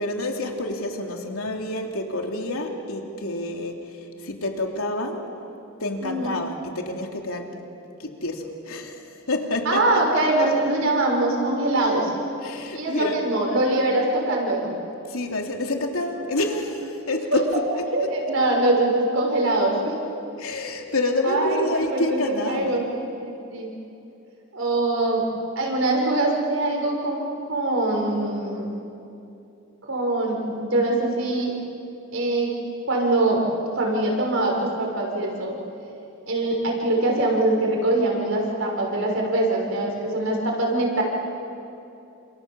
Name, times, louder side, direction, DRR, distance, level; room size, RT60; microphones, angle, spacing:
voice 1, 0.0-3.8 4.2-5.3 5.8-7.5 8.0-10.0 12.4-13.2 15.1-17.6 18.0-18.1 20.4-22.8, left 2 dB, 90° left, 2 dB, 3.1 m, -28 dB
voice 2, 6.0-6.3 9.6-12.1 12.7-14.7 17.9-20.0 21.2-22.8 23.2-23.7 24.5-25.2 25.6-28.7 29.9-31.5 32.1-32.5 32.8-35.5 36.3-41.0, right 2 dB, 70° right, 0 dB, 6.3 m, -23 dB
29.0 x 27.5 x 7.5 m, 2.7 s
head